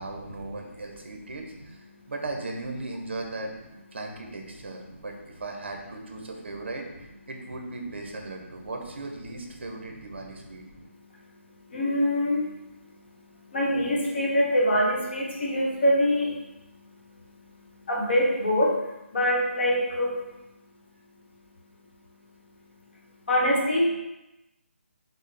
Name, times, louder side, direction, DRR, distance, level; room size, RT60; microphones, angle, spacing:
voice 1, 0.0-3.5 3.9-10.6, right 2 dB, 55° right, 2 dB, 0.6 m, -37 dB
voice 2, 10.6-23.9, equal, 50° left, -3 dB, 0.9 m, -27 dB
4.0 x 2.0 x 3.2 m, 0.98 s
hypercardioid pair, 175°, 7 cm